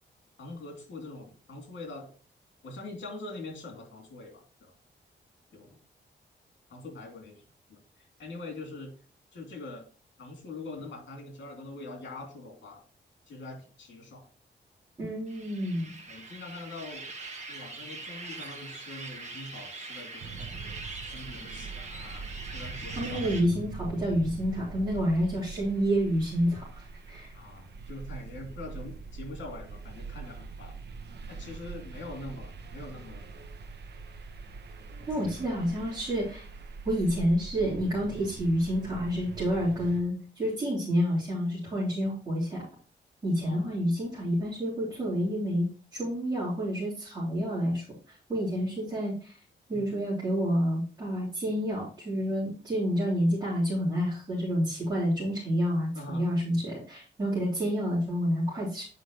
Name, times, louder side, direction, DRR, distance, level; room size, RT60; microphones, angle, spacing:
voice 1, 0.4-2.1 2.6-4.7 5.5-5.8 6.7-7.4 7.7-8.9 9.3-9.8 10.2-12.8 13.3-14.3 16.1-17.1 17.5-23.4 27.3-30.8 31.3-33.2 35.3-35.4 43.4-43.6 49.7-49.8 55.9-56.3, left 2 dB, 75° left, 1 dB, 2.8 m, -43 dB
voice 2, 15.0-15.9 23.0-27.3 35.1-36.5 36.8-42.6 43.2-47.8 48.3-49.4 49.7-58.8, equal, 20° right, -10 dB, 3.6 m, -29 dB
sound 1, 15.3-23.4, right 3 dB, 40° right, 1.5 m, -42 dB
sound 2, 20.2-40.0, right 4 dB, 65° right, 0.9 m, -43 dB
8.2 x 5.6 x 3.0 m, 0.39 s
wide cardioid pair, 155°, 19 cm